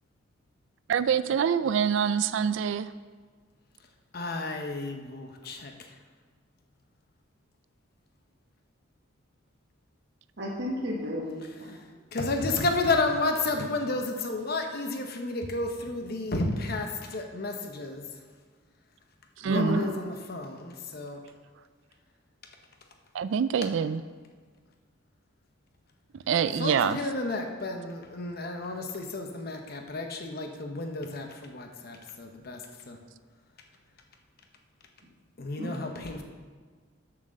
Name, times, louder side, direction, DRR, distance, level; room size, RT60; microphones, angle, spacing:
voice 1, 0.9-2.9 19.4-19.8 23.1-24.0 26.3-27.0, right 7 dB, 70° right, 14 dB, 0.3 m, -25 dB
voice 2, 4.1-5.9 11.7-11.8 12.1-18.1 19.4-21.2 26.4-33.0 35.4-36.2, left 2 dB, 50° left, 4 dB, 0.8 m, -32 dB
voice 3, 10.4-11.8 19.5-19.9 35.6-36.1, equal, 55° right, -3 dB, 1.4 m, -32 dB
7.4 x 6.3 x 6.5 m, 1.5 s
head